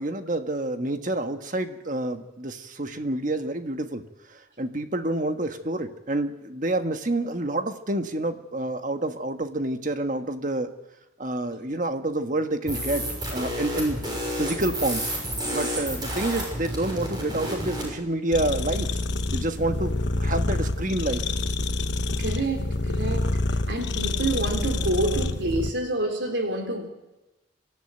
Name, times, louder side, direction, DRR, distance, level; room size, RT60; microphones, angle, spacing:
voice 1, 0.0-4.0 4.3-10.7 11.2-14.0 14.4-15.0 15.5-18.9 19.3-21.3, right 1 dB, 40° right, 1.4 m, -28 dB
sound 1, 12.7-17.9, equal, 25° right, 6.4 m, -30 dB
sound 2, 18.3-25.7, left 2 dB, 65° left, 1.1 m, -27 dB
voice 2, 22.2-23.3 23.7-26.9, right 2 dB, 70° right, 3.4 m, -28 dB
24.5 x 13.0 x 9.0 m
head